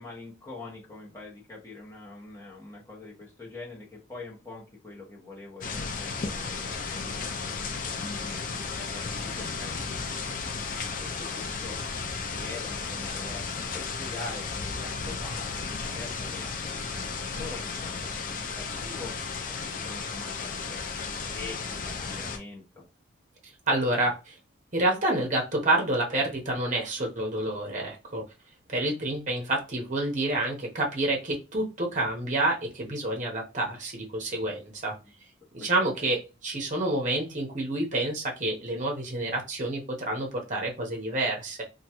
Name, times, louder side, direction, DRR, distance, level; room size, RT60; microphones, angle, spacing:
voice 1, 0.0-8.4 8.8-10.4 10.8-19.1 19.5-22.8 35.6-35.7 36.0-36.1, left 3 dB, 15° left, -4 dB, 1.1 m, -44 dB
sound 1, 5.6-22.4, left 4 dB, 45° left, 0.4 m, -34 dB
voice 2, 23.7-24.4 24.7-28.2 28.7-35.0 35.5-41.6, right 2 dB, 40° right, 1 dB, 0.9 m, -28 dB
2.9 x 2.3 x 2.9 m, 0.29 s
head